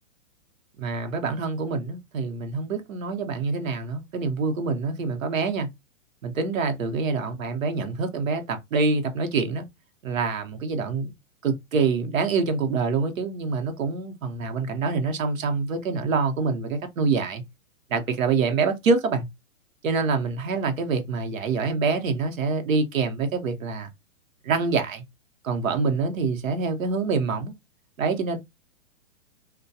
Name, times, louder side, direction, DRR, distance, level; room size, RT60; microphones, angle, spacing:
voice 1, 0.8-5.7 6.2-9.7 10.0-11.1 11.4-17.4 17.9-19.3 19.8-23.9 24.4-25.0 25.4-27.5 28.0-28.4, right 4 dB, 80° right, 0.9 m, -26 dB
2.2 x 2.2 x 2.7 m
hypercardioid pair, 160°, 39 cm